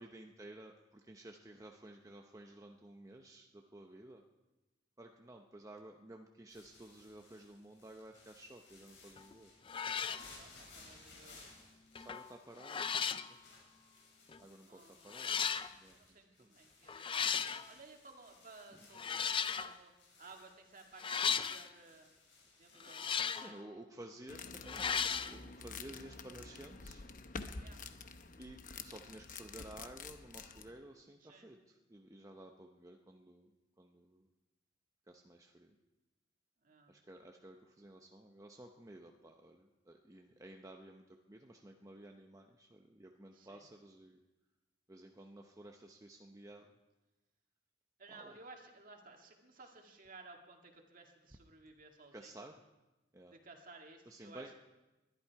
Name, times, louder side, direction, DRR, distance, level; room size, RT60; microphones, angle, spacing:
voice 1, 0.0-4.2 5.0-9.5 12.0-13.4 14.4-16.0 16.4-16.5 18.7-18.9 23.3-27.0 28.4-33.5 33.8-34.3 35.1-35.7 36.9-44.2 44.9-46.7 48.1-48.4 49.6-49.7 52.1-52.5 53.1-53.3 54.1-54.6, right 1 dB, 20° right, 3 dB, 0.8 m, -54 dB
sound 1, 6.5-23.0, left 3 dB, 75° left, 6.4 m, -61 dB
sound 2, 9.2-9.3 9.7-10.3 11.9-12.3 12.6-13.3 14.3-14.4 15.1-15.7 16.9-17.7 18.9-19.8 21.0-21.7 22.8-23.5 24.6-25.3, left 7 dB, 30° left, 0.5 m, -36 dB
voice 2, 9.9-11.6 14.7-15.0 15.9-22.1 22.6-23.7 27.6-27.8 31.2-31.6 36.6-36.9 43.3-43.6 48.0-52.5 53.3-54.6, right 3 dB, 50° right, 2 dB, 2.0 m, -57 dB
sound 3, 24.3-30.7, left 4 dB, 45° left, 0.8 m, -48 dB
21.0 x 12.0 x 4.7 m, 1.1 s
head